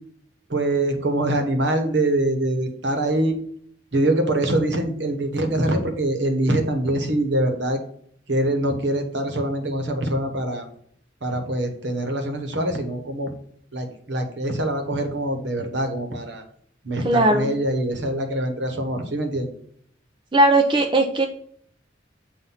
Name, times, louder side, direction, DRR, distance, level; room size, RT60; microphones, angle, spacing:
voice 1, 0.5-3.4 3.9-7.8 8.3-10.7 11.2-13.3 13.7-16.4 16.8-19.5, right 1 dB, 70° right, 6 dB, 1.1 m, -24 dB
voice 2, 17.0-17.5 20.3-21.3, right 2 dB, 25° right, 3 dB, 0.5 m, -18 dB
7.4 x 2.6 x 5.6 m, 0.63 s
head